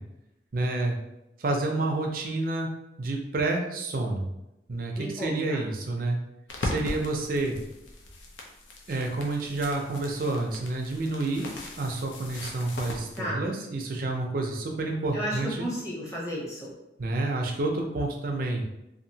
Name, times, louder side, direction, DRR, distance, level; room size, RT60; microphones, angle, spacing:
voice 1, 0.5-1.0 1.4-2.7 3.0-4.3 4.7-6.2 6.6-7.6 8.9-11.5 11.8-15.5 17.0-18.6, right 2 dB, 50° right, 2 dB, 0.4 m, -29 dB
voice 2, 4.9-5.6 13.2-13.5 15.1-16.7, equal, 15° left, -6 dB, 0.8 m, -33 dB
sound 1, 6.5-13.2, left 2 dB, 85° left, 0.6 m, -39 dB
2.8 x 2.5 x 2.7 m, 0.91 s
head